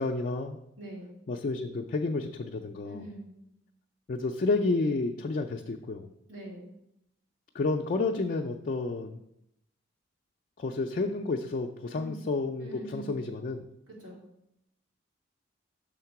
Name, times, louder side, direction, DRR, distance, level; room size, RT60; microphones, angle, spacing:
voice 1, 0.0-0.6 1.3-3.0 4.1-6.1 7.5-9.2 10.6-13.6, left 3 dB, 45° left, 2 dB, 0.4 m, -30 dB
voice 2, 0.8-1.2 2.8-3.4 6.3-6.7 11.9-12.2 12.6-13.1 13.9-14.2, right 1 dB, 75° right, -4 dB, 2.5 m, -43 dB
6.5 x 3.7 x 5.8 m, 0.81 s
head